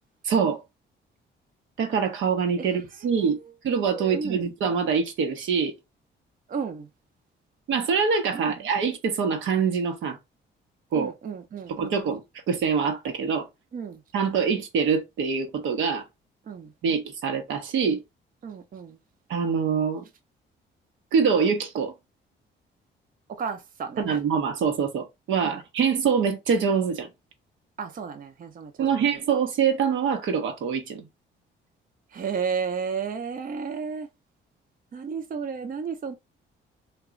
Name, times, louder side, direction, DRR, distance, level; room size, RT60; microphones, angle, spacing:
voice 1, 0.2-0.6 1.8-3.4 3.6-5.7 7.7-10.2 10.9-11.1 11.8-12.2 12.5-13.5 14.1-16.0 16.8-18.0 19.3-20.0 21.1-21.9 24.0-27.1 28.8-31.0, right 6 dB, 80° right, 0.9 m, -24 dB
voice 2, 2.6-3.5 3.9-4.5 6.5-6.9 8.3-8.6 10.9-12.0 13.7-14.0 16.5-16.7 18.4-19.0 23.3-24.2 25.4-25.6 27.8-29.2 32.1-34.1 34.9-36.1, right 6 dB, 45° right, 0.6 m, -33 dB
2.9 x 2.3 x 3.6 m
cardioid pair, 90°, 20 cm